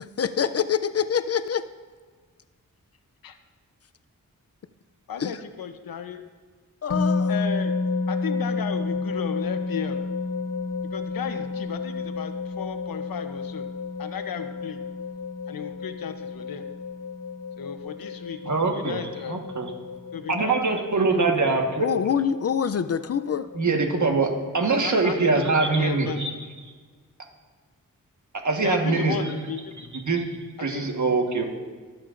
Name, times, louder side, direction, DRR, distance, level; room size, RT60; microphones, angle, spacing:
voice 1, 0.0-1.6 5.2-5.3 6.8-7.4 21.1-21.3 21.8-23.5, left 7 dB, 45° left, 13 dB, 0.4 m, -25 dB
voice 2, 5.1-6.2 7.3-7.7 8.1-10.0 10.9-13.7 14.0-14.8 15.5-16.6 17.6-19.4 20.1-21.2 24.8-26.4 28.6-29.7 30.7-30.9, left 7 dB, 90° left, 8 dB, 0.8 m, -35 dB
sound 1, 6.9-26.3, left 4 dB, 65° left, 1.4 m, -32 dB
voice 3, 18.4-19.7 20.3-21.9 23.5-26.3 28.4-29.3 29.9-30.2 30.6-31.4, right 3 dB, 60° right, 2 dB, 1.4 m, -23 dB
18.5 x 7.6 x 2.5 m, 1.5 s
wide cardioid pair, 65°, 34 cm